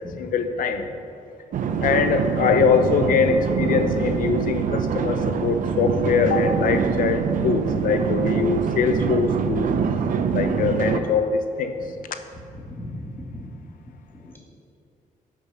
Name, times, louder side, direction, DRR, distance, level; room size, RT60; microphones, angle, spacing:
voice 1, 0.2-0.8 1.8-9.7 10.3-11.7, left 5 dB, 75° left, 8 dB, 1.0 m, -22 dB
sound 1, 1.5-11.0, right 6 dB, 65° right, 0.8 m, -24 dB
voice 2, 12.5-13.4 14.1-14.4, left 1 dB, 15° left, -3 dB, 2.1 m, -36 dB
15.0 x 6.4 x 5.8 m, 2.6 s
cardioid pair, 110°, 14 cm